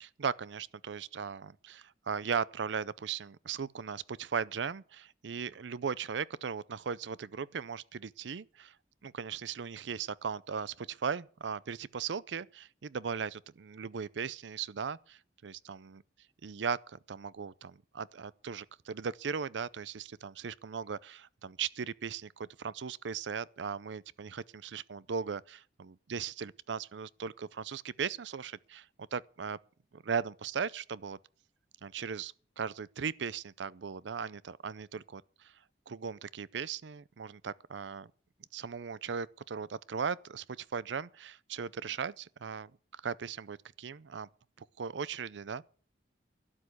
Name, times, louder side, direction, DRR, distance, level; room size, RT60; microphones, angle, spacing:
voice 1, 0.0-8.7 9.0-16.0 16.4-28.9 29.1-29.6 29.9-31.2 31.8-35.5 35.9-38.1 38.5-44.3 44.8-45.6, right 6 dB, 80° right, 0.5 m, -38 dB
12.5 x 8.6 x 8.2 m
head